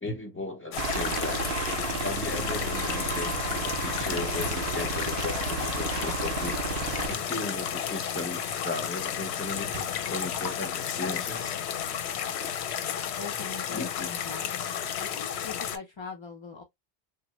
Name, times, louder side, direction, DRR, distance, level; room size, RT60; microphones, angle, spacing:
voice 1, 0.0-1.5 2.0-6.6 7.1-9.7 10.1-11.6 13.7-14.1, left 2 dB, 15° left, 0.7 m, -36 dB
sound 1, 0.7-15.8, left 9 dB, 85° left, 0.8 m, -32 dB
Aircraft, 0.8-7.1, right 5 dB, 65° right, 0.7 m, -32 dB
sound 2, 7.1-10.8, right 2 dB, 30° right, 0.5 m, -48 dB
voice 2, 13.1-14.5 15.0-16.6, left 5 dB, 45° left, 0.4 m, -41 dB
3.4 x 2.1 x 2.9 m
omnidirectional pair, 1.1 m